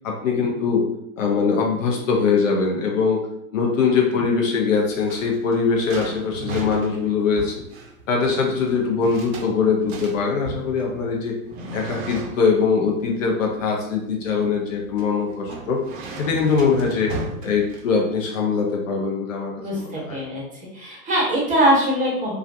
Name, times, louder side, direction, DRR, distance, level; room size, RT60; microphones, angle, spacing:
voice 1, 0.0-0.9 1.2-3.3 3.5-7.6 8.1-11.4 11.7-15.8 16.2-17.1 17.4-20.2, left 5 dB, 60° left, 0 dB, 0.7 m, -22 dB
sound 1, 4.6-18.3, right 3 dB, 45° right, 0.6 m, -37 dB
voice 2, 19.5-20.4 20.7-22.3, right 1 dB, 15° right, -4 dB, 0.9 m, -22 dB
2.3 x 2.1 x 2.6 m, 0.77 s
figure-of-eight pair, 90°, 43 cm